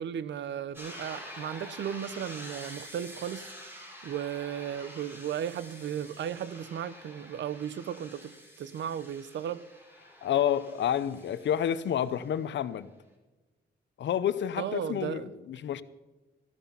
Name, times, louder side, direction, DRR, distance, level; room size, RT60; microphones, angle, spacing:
voice 1, 0.0-9.6 14.6-15.3, right 9 dB, 80° right, 0.7 m, -35 dB
sound 1, 0.7-12.4, equal, 15° right, 6.2 m, -48 dB
voice 2, 10.2-12.9 14.0-15.2 15.5-15.8, left 10 dB, 80° left, 0.7 m, -29 dB
14.5 x 13.0 x 5.6 m
cardioid pair, 85°, 19 cm